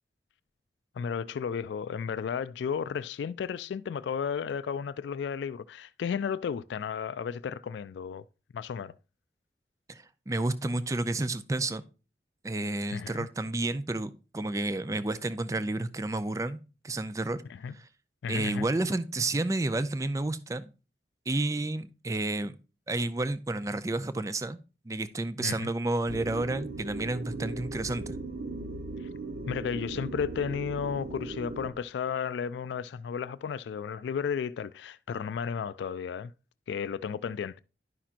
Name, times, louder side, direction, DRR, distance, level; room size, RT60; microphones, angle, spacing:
voice 1, 1.0-8.2 8.5-8.9 12.9-13.3 17.6-17.7 18.2-18.7 25.4-25.7 29.5-36.3 36.7-37.6, left 7 dB, 90° left, 0.3 m, -33 dB
voice 2, 9.9-11.8 12.4-17.4 17.7-17.9 18.3-20.6 21.3-22.6 22.9-24.6 24.9-28.2, right 2 dB, 20° right, 0.4 m, -31 dB
sound 1, 26.1-31.7, right 2 dB, 60° right, 0.7 m, -38 dB
11.0 x 5.8 x 2.5 m
head